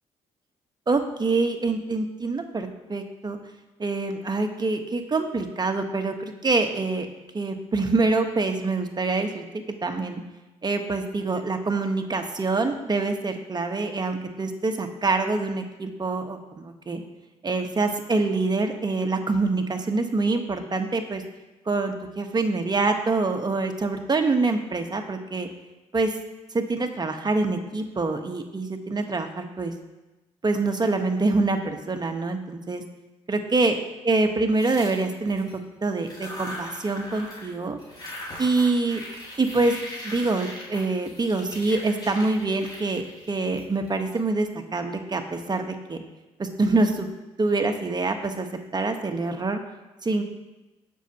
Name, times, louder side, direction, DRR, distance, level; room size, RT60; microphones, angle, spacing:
voice 1, 0.9-3.4 3.8-7.1 7.3-9.5 9.8-10.2 10.6-17.0 17.4-21.2 21.7-25.5 25.9-26.2 26.5-29.7 30.4-32.8 33.3-37.8 38.4-39.0 39.4-39.8 40.0-46.0 46.4-47.1 47.4-49.6 50.0-50.2, right 3 dB, 30° right, 5 dB, 1.2 m, -25 dB
sound 1, 34.5-35.5 36.0-37.5 37.8-44.2, left 1 dB, 30° left, 4.0 m, -40 dB
19.5 x 6.5 x 2.9 m, 1.1 s
supercardioid pair, 60°, 13 cm